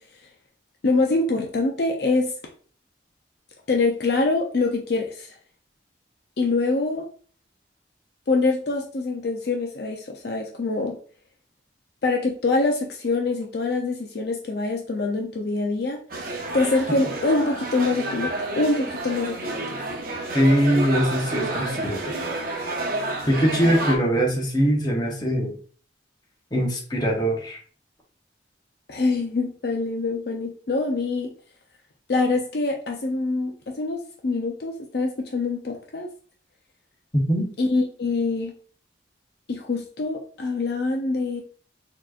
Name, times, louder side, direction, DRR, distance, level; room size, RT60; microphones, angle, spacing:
voice 1, 0.8-2.3 3.7-5.3 6.4-7.0 8.3-11.0 12.0-16.0 16.5-19.6 28.9-31.3 32.1-36.1 37.6-38.5 39.5-41.4, left 3 dB, 60° left, 1 dB, 0.5 m, -24 dB
sound 1, 16.1-24.0, right 2 dB, 50° right, 0.7 m, -30 dB
voice 2, 20.3-22.1 23.3-25.5 26.5-27.6 37.3-37.5, equal, 20° left, -1 dB, 0.9 m, -22 dB
4.3 x 2.9 x 2.4 m, 0.44 s
head